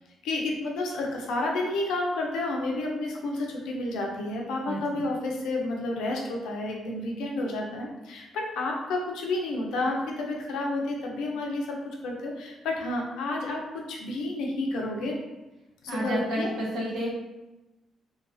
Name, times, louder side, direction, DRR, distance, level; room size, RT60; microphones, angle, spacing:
voice 1, 0.2-11.8 12.0-13.6 13.9-15.2 15.8-16.5, left 2 dB, 85° left, -1 dB, 0.5 m, -30 dB
voice 2, 15.9-17.1, right 1 dB, 75° right, -4 dB, 0.8 m, -30 dB
2.3 x 2.3 x 2.4 m, 1.0 s
cardioid pair, 90°, 0 cm